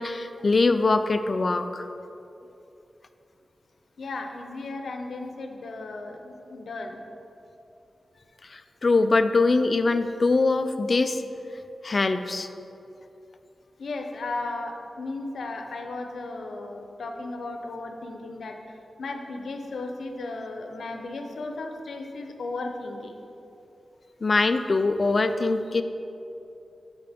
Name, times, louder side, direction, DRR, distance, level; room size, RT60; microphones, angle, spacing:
voice 1, 0.0-1.8 8.5-11.2 11.8-12.5 24.2-25.8, left 3 dB, 40° left, 9 dB, 0.3 m, -23 dB
voice 2, 4.0-7.0 13.8-23.2, left 2 dB, 85° left, 4 dB, 0.7 m, -35 dB
8.8 x 5.6 x 3.5 m, 2.9 s
wide cardioid pair, 120°, 0 cm